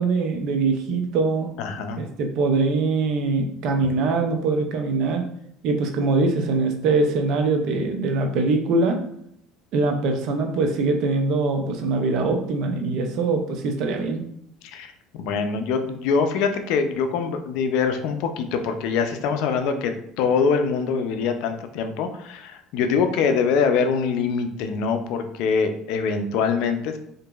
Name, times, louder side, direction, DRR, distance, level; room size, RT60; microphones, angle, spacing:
voice 1, 0.0-1.5 1.9-5.2 5.6-9.0 9.7-14.2, right 3 dB, 65° right, 4 dB, 0.5 m, -23 dB
voice 2, 1.6-2.0 14.6-27.0, left 5 dB, 75° left, 7 dB, 0.4 m, -24 dB
2.8 x 2.5 x 2.3 m, 0.69 s
supercardioid pair, 110°, 0 cm